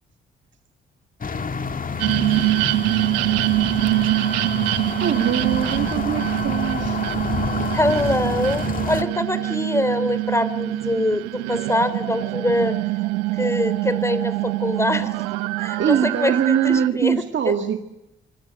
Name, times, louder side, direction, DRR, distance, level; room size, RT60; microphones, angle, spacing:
sound 1, 1.2-9.0, left 4 dB, 40° left, 2.2 m, -28 dB
sound 2, 2.0-16.9, right 19 dB, 90° right, 1.0 m, -24 dB
voice 1, 5.0-7.0 15.8-17.8, right 8 dB, 60° right, 2.0 m, -22 dB
voice 2, 7.7-12.8 13.3-15.1 15.6-17.1 17.4-17.5, left 1 dB, 15° left, 3.5 m, -24 dB
27.0 x 26.0 x 7.8 m
hypercardioid pair, 45°, 21 cm